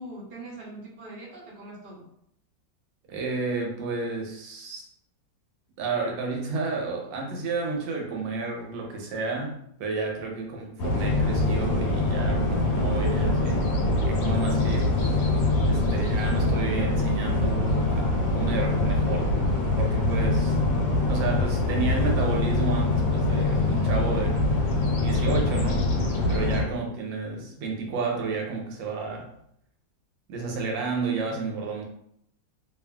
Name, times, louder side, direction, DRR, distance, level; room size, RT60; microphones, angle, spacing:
voice 1, 0.0-2.1 15.7-16.0 20.1-20.3 26.5-26.8, right 2 dB, 50° right, -4 dB, 0.6 m, -42 dB
voice 2, 3.1-4.9 5.8-13.7 14.1-15.0 15.7-19.4 19.8-20.5 21.1-24.5 24.9-26.0 26.3-29.3 30.3-31.9, right 4 dB, 85° right, 1 dB, 1.3 m, -31 dB
sound 1, 10.8-26.6, left 2 dB, 85° left, 1.4 m, -24 dB
2.9 x 2.5 x 2.2 m, 0.70 s
omnidirectional pair, 2.0 m